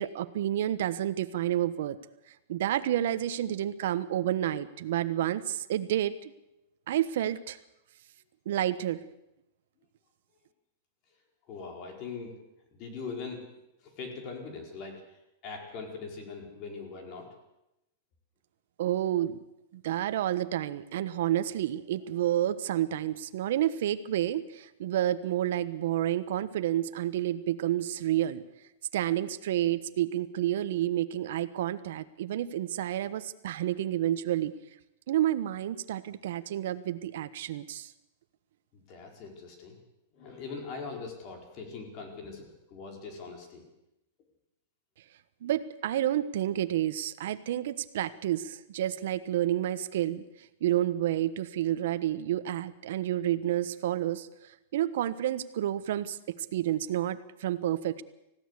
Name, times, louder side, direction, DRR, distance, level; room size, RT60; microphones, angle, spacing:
voice 1, 0.0-2.0 2.5-6.3 6.9-7.6 8.4-9.0 18.8-19.4 19.7-28.4 28.9-34.5 35.1-37.9 45.4-50.2 50.6-58.0, right 12 dB, 70° right, 12 dB, 1.2 m, -30 dB
voice 2, 11.5-12.4 12.8-13.5 13.8-17.3 38.7-39.8 40.1-43.7, left 4 dB, 40° left, 3 dB, 4.8 m, -41 dB
20.5 x 15.5 x 8.4 m, 0.91 s
supercardioid pair, 150°, 0 cm